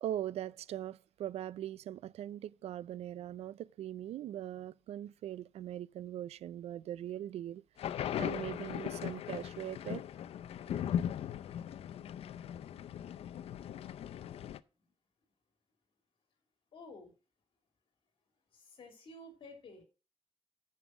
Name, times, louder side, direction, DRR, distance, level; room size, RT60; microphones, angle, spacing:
voice 1, 0.0-10.0, right 11 dB, 75° right, 0.4 m, -41 dB
sound 1, 7.8-14.6, left 10 dB, 65° left, 0.5 m, -38 dB
voice 2, 16.7-17.1 18.5-19.8, left 2 dB, 50° left, 3.1 m, -52 dB
9.4 x 5.6 x 6.0 m
wide cardioid pair, 160°, 11 cm